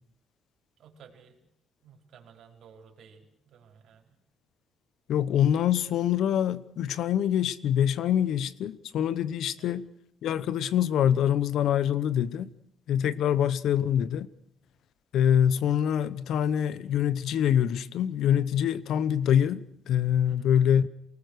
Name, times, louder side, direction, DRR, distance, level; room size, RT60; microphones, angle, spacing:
voice 1, 0.8-1.4 1.8-4.1 9.6-9.8 13.3-13.5 20.3-20.5, right 7 dB, 70° right, 5.0 m, -54 dB
voice 2, 5.1-9.9 10.2-12.5 12.9-14.3 15.1-20.9, left 9 dB, 75° left, 1.0 m, -25 dB
28.0 x 19.5 x 6.6 m
cardioid pair, 120°, 0 cm